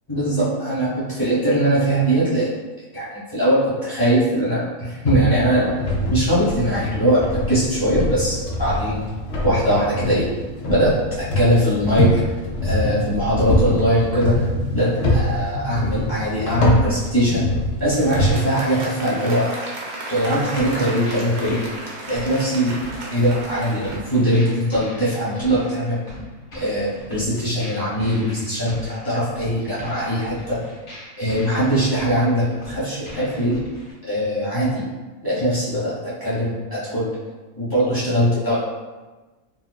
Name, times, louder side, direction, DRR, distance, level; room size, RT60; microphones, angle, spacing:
voice 1, 0.1-2.5 2.9-5.7 6.1-9.0 9.4-10.3 10.6-12.1 12.6-14.4 14.7-17.5 17.8-19.5 20.1-21.6 22.1-22.8 23.1-26.0 26.5-30.6 31.2-33.6 34.1-34.8 35.2-37.1 37.5-38.6, equal, 20° left, -10 dB, 0.7 m, -21 dB
sound 1, 5.1-18.3, left 1 dB, 65° left, 0.7 m, -24 dB
Applause, 17.8-24.8, right 1 dB, 85° right, 0.4 m, -34 dB
sound 2, 20.6-33.9, equal, 50° left, 0.4 m, -40 dB
2.4 x 2.2 x 2.3 m, 1.2 s
omnidirectional pair, 1.4 m